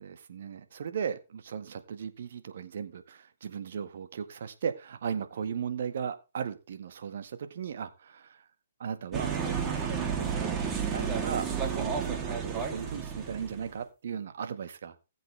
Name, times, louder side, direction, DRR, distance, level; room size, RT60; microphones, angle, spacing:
voice 1, 0.0-8.4 8.8-15.0, right 7 dB, 65° right, 9 dB, 1.8 m, -37 dB
sound 1, 9.1-13.8, right 6 dB, 20° right, 2.9 m, -32 dB
19.0 x 7.8 x 3.4 m, 0.28 s
hypercardioid pair, 130°, 0 cm